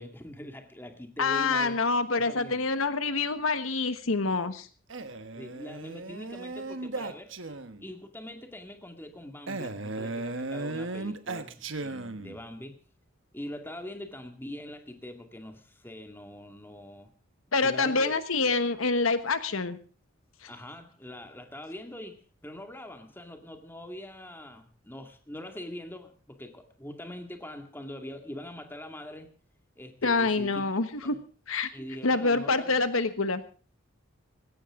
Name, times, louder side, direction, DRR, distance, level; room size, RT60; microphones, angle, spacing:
voice 1, 0.0-1.8 2.1-2.6 5.3-12.8 13.3-17.1 17.6-18.1 20.5-29.3 29.8-30.6 31.0-31.2 31.7-32.9, left 1 dB, 10° left, 5 dB, 2.1 m, -43 dB
voice 2, 1.2-4.7 17.5-19.8 30.0-31.1 31.5-31.7 32.0-33.4, left 3 dB, 80° left, 11 dB, 1.3 m, -26 dB
Male speech man speaking, 4.9-7.9 9.5-12.4, right 2 dB, 65° right, 1.3 m, -36 dB
19.0 x 16.5 x 3.7 m, 0.38 s
head